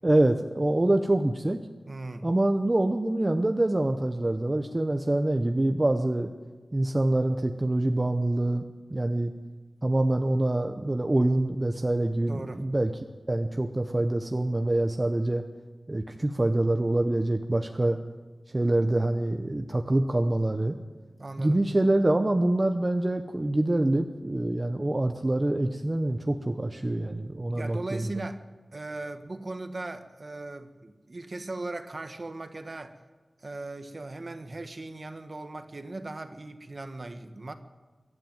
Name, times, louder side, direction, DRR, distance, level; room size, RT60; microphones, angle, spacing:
voice 1, 0.0-1.6 2.2-6.3 6.7-8.6 8.9-9.3 9.8-12.9 13.3-15.4 15.9-18.0 18.5-20.8 21.4-28.1, right 1 dB, 25° right, 5 dB, 0.9 m, -25 dB
voice 2, 1.9-2.3 12.3-12.6 21.2-21.6 27.5-28.4 28.7-33.0 33.4-37.5, right 2 dB, 45° right, 8 dB, 1.5 m, -38 dB
22.5 x 12.5 x 9.2 m, 1.3 s
wide cardioid pair, 95°, 0 cm